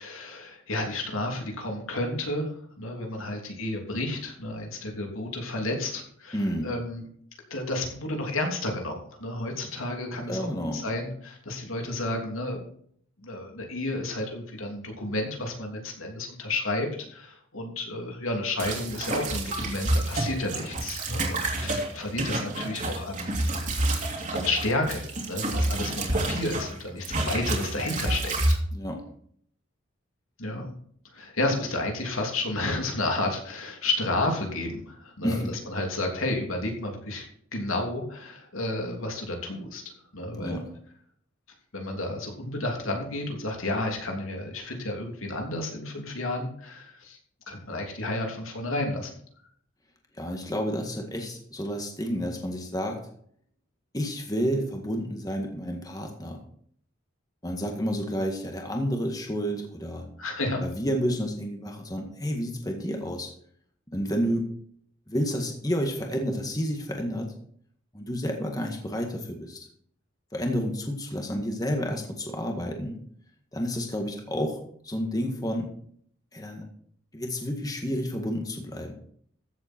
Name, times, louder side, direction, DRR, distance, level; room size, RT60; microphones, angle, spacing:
voice 1, 0.0-6.4 6.6-7.0 7.5-12.6 13.2-23.4 23.7-28.6 30.4-30.7 31.1-37.2 37.5-39.8 40.1-40.6 41.7-47.2 47.5-49.1 60.2-60.6, left 2 dB, 80° left, 2 dB, 3.2 m, -31 dB
voice 2, 6.3-6.7 10.3-10.8 28.7-29.1 35.2-35.5 40.3-40.7 50.1-53.0 53.9-56.4 57.4-60.0 60.6-63.3 63.9-64.5 65.1-67.3 67.9-69.6 70.3-73.0 73.5-75.7 76.3-76.6 77.1-78.9, equal, 20° left, 2 dB, 1.8 m, -30 dB
sound 1, 18.6-26.7 27.0-28.5, right 1 dB, 40° right, 2.9 m, -28 dB
15.0 x 7.9 x 4.5 m, 0.62 s
head